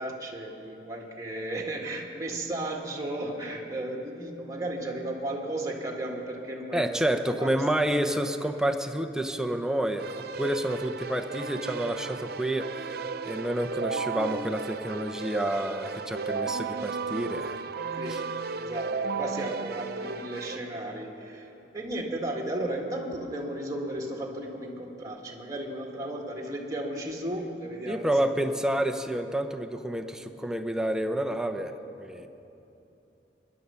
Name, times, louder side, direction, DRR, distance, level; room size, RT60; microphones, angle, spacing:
voice 1, 0.0-7.0 7.3-7.6 18.0-18.2 18.5-28.3, right 1 dB, 20° right, 0 dB, 1.8 m, -34 dB
voice 2, 6.7-13.0 13.2-17.6 18.1-18.2 27.9-31.7 32.0-32.3, right 1 dB, 5° right, 4 dB, 0.7 m, -29 dB
Keyboard (musical), 10.0-20.6, right 5 dB, 60° right, 0.6 m, -34 dB
22.0 x 11.0 x 5.7 m, 3.0 s
head